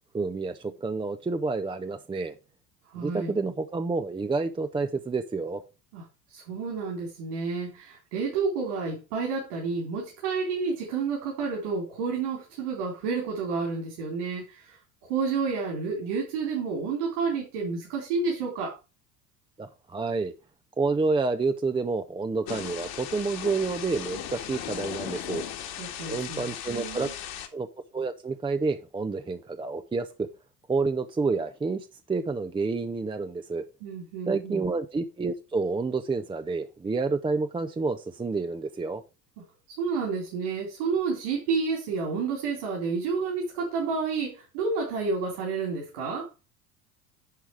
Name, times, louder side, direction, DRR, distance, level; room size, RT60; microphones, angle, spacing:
voice 1, 0.1-2.3 3.0-5.6 19.6-20.3 20.8-25.4 26.1-27.1 27.5-27.7 27.9-30.1 30.7-33.6 34.3-39.0, right 4 dB, 10° right, 0.6 m, -29 dB
voice 2, 2.9-3.4 5.9-6.0 6.3-14.8 15.1-18.8 25.8-27.1 33.8-34.7 39.8-46.3, right 4 dB, 65° right, 4.3 m, -30 dB
Thunder / Rain, 22.5-27.5, left 10 dB, 50° left, 1.8 m, -37 dB
10.5 x 4.7 x 4.7 m
hypercardioid pair, 70°, 48 cm